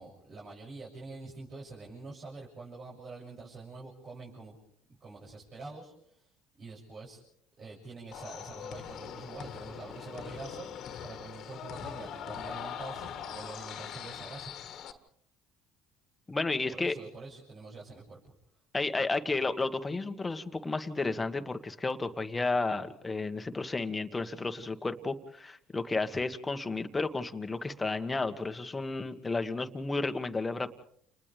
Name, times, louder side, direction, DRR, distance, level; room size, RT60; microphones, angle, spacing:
voice 1, 0.0-4.6 5.0-6.3 6.6-7.2 7.6-14.5 16.7-18.3, right 3 dB, 40° right, -4 dB, 7.4 m, -46 dB
sound 1, 8.1-14.9, left 8 dB, 55° left, 2.1 m, -42 dB
voice 2, 16.3-16.9 18.7-30.7, left 3 dB, 20° left, 8 dB, 2.0 m, -32 dB
30.0 x 30.0 x 3.6 m, 0.67 s
hypercardioid pair, 65°, 0 cm